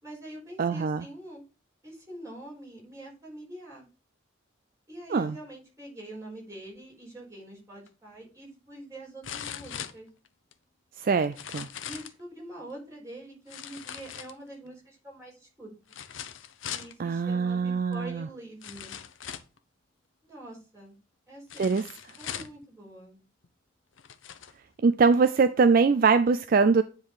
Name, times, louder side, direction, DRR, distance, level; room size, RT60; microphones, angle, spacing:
voice 1, 0.0-1.4 1.8-3.9 4.9-10.1 11.8-15.7 16.7-18.9 20.2-21.0 21.3-21.7 22.2-23.2, right 1 dB, 15° right, 4.4 m, -44 dB
voice 2, 0.6-1.1 5.1-5.4 11.0-11.7 17.0-18.3 21.6-21.9 24.8-26.8, right 4 dB, 45° right, 0.4 m, -23 dB
sound 1, 7.9-8.0 9.2-10.5 11.2-12.2 13.5-14.7 15.9-16.9 17.9-18.0 18.6-19.6 21.5-22.6 23.4-23.5 24.0-24.5 25.1-25.2, left 9 dB, 75° left, 0.7 m, -40 dB
9.6 x 3.8 x 4.8 m
head